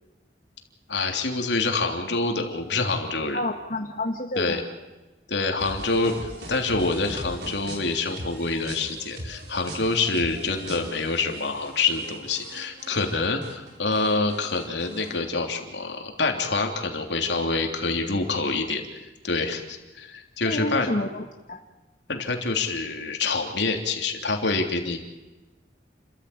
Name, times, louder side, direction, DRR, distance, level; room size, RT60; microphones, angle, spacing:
voice 1, 0.9-3.4 4.4-4.6 5.3-20.9 22.1-25.0, left 3 dB, 80° left, 3 dB, 3.3 m, -26 dB
voice 2, 3.3-4.6 20.4-21.6, left 1 dB, 50° left, 2 dB, 1.5 m, -29 dB
sound 1, 5.6-13.1 13.4-15.2, right 1 dB, 70° right, 4.6 m, -41 dB
30.0 x 14.0 x 8.7 m, 1.1 s
head